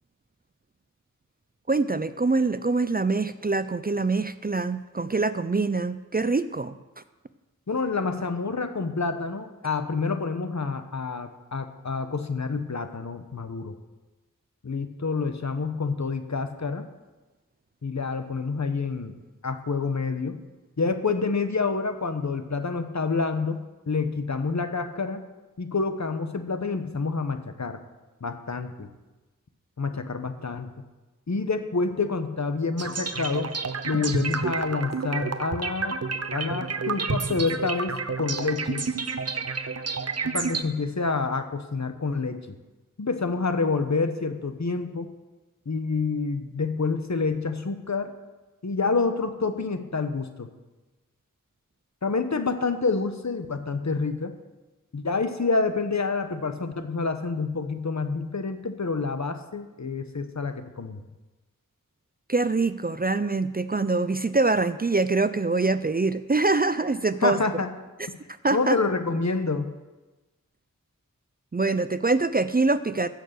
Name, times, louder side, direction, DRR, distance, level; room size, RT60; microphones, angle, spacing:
voice 1, 1.7-6.7 62.3-67.4 68.4-68.8 71.5-73.1, right 3 dB, 30° right, 13 dB, 0.5 m, -24 dB
voice 2, 7.7-13.7 14.6-16.9 17.8-19.1 19.4-20.4 20.8-25.2 25.6-27.8 28.2-28.9 29.8-30.7 31.3-33.6 33.8-36.0 36.3-38.9 40.2-42.4 43.0-45.1 45.7-48.1 48.6-50.5 52.0-54.4 54.9-61.0 67.2-67.7 68.5-69.7, left 4 dB, 55° left, 8 dB, 1.2 m, -28 dB
sound 1, 32.8-40.6, right 4 dB, 50° right, 0.8 m, -30 dB
15.5 x 6.6 x 6.7 m, 1.1 s
wide cardioid pair, 50°, 33 cm